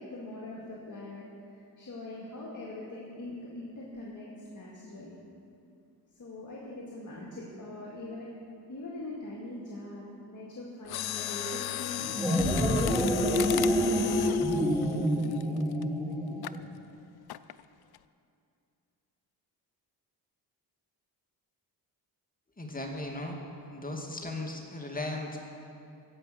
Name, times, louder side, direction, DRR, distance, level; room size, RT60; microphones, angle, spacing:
voice 1, 0.0-5.2 6.1-8.3 8.7-12.0 12.8-15.5, left 2 dB, 45° left, -5 dB, 2.2 m, -42 dB
Mechanisms, 10.8-15.8 16.4-16.6 17.3-17.6 17.9-18.0, left 13 dB, 60° left, 0.5 m, -36 dB
sound 1, 12.0-16.6, equal, 5° right, 1.6 m, -27 dB
voice 2, 22.6-23.4 23.7-25.4, left 2 dB, 20° left, 1 dB, 2.0 m, -36 dB
15.5 x 5.6 x 7.8 m, 2.5 s
cardioid pair, 70°, 43 cm